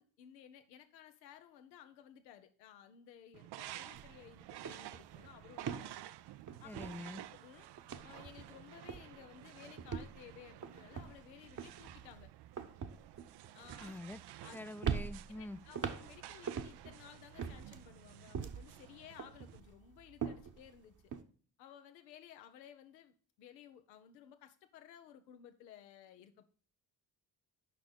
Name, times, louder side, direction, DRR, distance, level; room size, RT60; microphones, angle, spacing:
voice 1, 0.0-5.9 6.6-6.7 7.3-7.7 8.0-12.3 13.5-13.9 14.4-14.7 15.3-21.0 21.6-26.5, left 10 dB, 85° left, 0.9 m, -57 dB
sound 1, 3.3-19.6, right 14 dB, 55° right, 0.6 m, -52 dB
sound 2, 3.9-4.2 4.4-7.4 7.8-8.6 8.9-9.3 9.8-14.5 14.8-17.0 17.4-18.8 19.2-21.2, right 7 dB, 40° right, 1.1 m, -43 dB
voice 2, 6.6-7.2 13.8-14.2 14.5-15.6, left 1 dB, 5° left, 0.5 m, -45 dB
9.3 x 5.9 x 5.1 m
hypercardioid pair, 40°, 50 cm